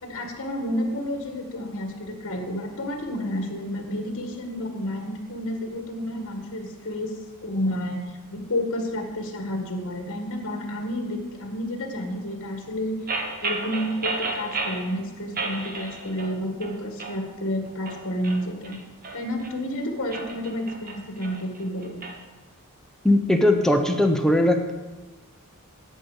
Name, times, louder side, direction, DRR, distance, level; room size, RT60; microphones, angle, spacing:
voice 1, 0.0-7.2 7.4-8.0 8.3-13.0 13.4-18.8 19.1-22.0, left 1 dB, 60° left, 3 dB, 1.7 m, -30 dB
sound 1, 13.1-14.8 15.3-16.3 16.6-17.2 17.7-19.5 20.0-22.1, right 3 dB, 40° right, 1.2 m, -32 dB
voice 2, 23.0-24.7, left 1 dB, ahead, 4 dB, 0.8 m, -19 dB
10.0 x 5.3 x 8.2 m, 1.2 s
head